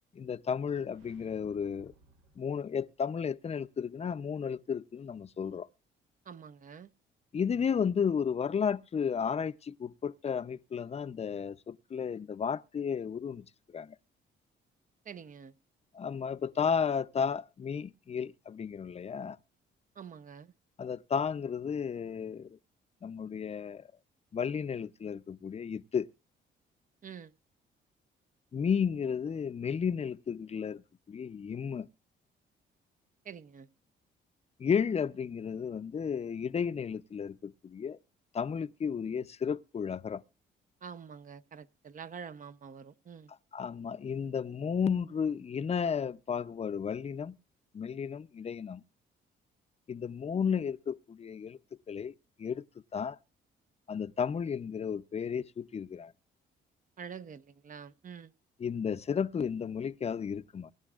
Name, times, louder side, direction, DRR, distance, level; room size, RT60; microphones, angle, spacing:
voice 1, 0.1-1.9 2.4-5.7 7.3-13.5 13.7-13.9 15.9-19.4 20.8-22.6 23.0-23.9 24.3-26.1 28.5-30.8 31.1-31.9 34.6-38.0 38.3-40.2 43.5-47.4 47.7-48.8 49.9-51.6 51.9-52.1 52.4-52.6 52.9-53.2 53.9-56.1 58.6-60.7, left 7 dB, 30° left, 0.6 m, -33 dB
sound 1, 0.9-3.1, right 2 dB, 90° right, 1.8 m, -62 dB
voice 2, 6.2-6.9 15.0-15.5 20.0-20.5 27.0-27.3 33.2-33.7 40.8-43.3 57.0-58.3, right 7 dB, 40° right, 0.6 m, -46 dB
23.0 x 11.0 x 2.4 m
cardioid pair, 90°, 20 cm